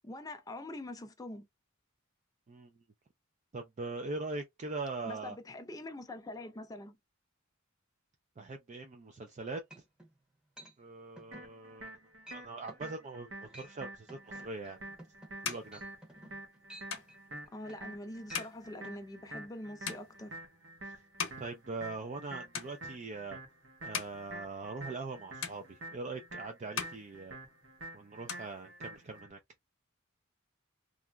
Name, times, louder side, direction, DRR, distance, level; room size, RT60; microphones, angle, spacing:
voice 1, 0.0-1.4 5.0-6.9 17.5-20.3, left 1 dB, 20° left, 0.5 m, -44 dB
voice 2, 3.5-5.4 8.4-9.6 10.8-12.0 12.3-14.8 15.4-15.9 20.8-20.9 21.4-23.4 23.8-27.4 27.9-29.4, right 3 dB, 35° right, 0.4 m, -41 dB
sound 1, 9.3-9.4 9.7-10.1 10.6-10.8 11.2-11.5 11.8-12.0 12.3-12.4 12.7-12.9 13.4-13.8 14.1-18.0 18.3-18.5 18.8-19.0, right 1 dB, 5° right, 0.8 m, -53 dB
sound 2, 11.3-29.3, right 1 dB, 65° right, 0.9 m, -48 dB
sound 3, 14.6-22.2 22.5-23.2 23.7-25.1 25.4-26.3 26.6-27.8 28.1-29.2, left 7 dB, 75° left, 0.8 m, -43 dB
2.8 x 2.4 x 2.2 m
head